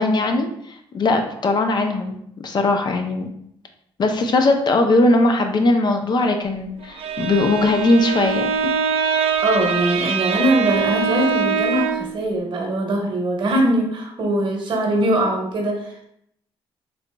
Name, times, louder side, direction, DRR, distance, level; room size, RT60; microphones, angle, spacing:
voice 1, 0.0-3.3 4.0-8.7, left 2 dB, 45° left, 5 dB, 0.5 m, -19 dB
Bowed string instrument, 6.8-12.2, right 6 dB, 70° right, 0.4 m, -23 dB
voice 2, 9.4-16.1, right 1 dB, 50° right, 0 dB, 1.0 m, -21 dB
3.9 x 2.8 x 2.2 m, 0.72 s
cardioid pair, 80°, 10 cm